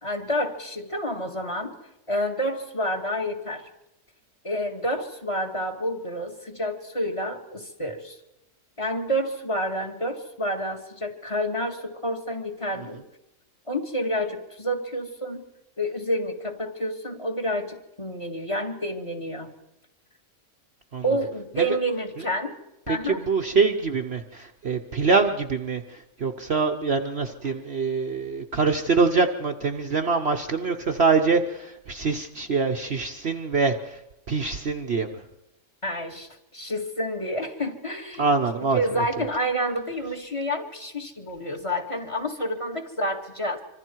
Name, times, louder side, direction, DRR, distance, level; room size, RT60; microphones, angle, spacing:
voice 1, 0.0-1.7 2.1-3.7 4.4-8.2 8.8-13.0 13.7-15.5 15.8-19.5 21.0-22.5 22.9-23.2 35.8-38.3 38.7-43.6, equal, 20° left, 4 dB, 2.1 m, -29 dB
voice 2, 22.9-35.2 38.2-39.2, right 4 dB, 50° right, 5 dB, 1.1 m, -25 dB
26.0 x 25.5 x 4.6 m, 0.88 s
omnidirectional pair, 1.6 m